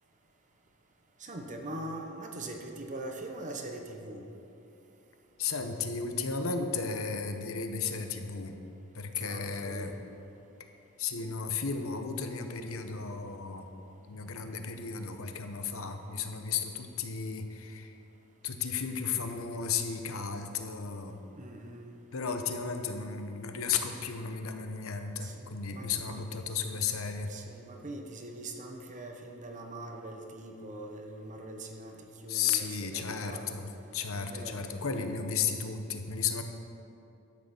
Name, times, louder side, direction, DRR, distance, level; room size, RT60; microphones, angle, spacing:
voice 1, 1.2-4.3 9.2-10.0 21.3-21.9 25.2-26.3 27.3-33.5 34.1-34.6, right 2 dB, 35° right, 3 dB, 1.0 m, -42 dB
voice 2, 5.4-8.6 8.9-9.9 11.0-13.7 14.1-17.9 18.4-21.2 22.1-27.3 32.3-36.4, left 5 dB, 75° left, 6 dB, 1.0 m, -34 dB
12.0 x 6.5 x 7.0 m, 2.9 s
head